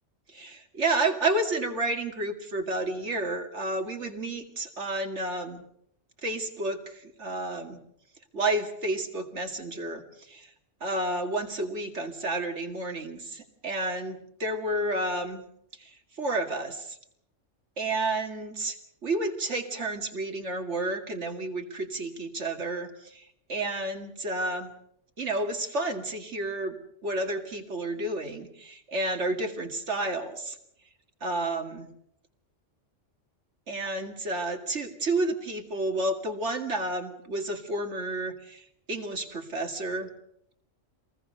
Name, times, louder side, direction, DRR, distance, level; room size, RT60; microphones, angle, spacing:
voice 1, 0.3-5.6 6.2-7.8 8.3-10.5 10.8-15.4 15.8-17.0 17.8-24.7 25.2-26.8 27.0-30.6 31.2-31.9 33.7-40.1, right 2 dB, 65° right, 4 dB, 2.6 m, -31 dB
26.5 x 20.5 x 6.8 m, 0.75 s
omnidirectional pair, 1.3 m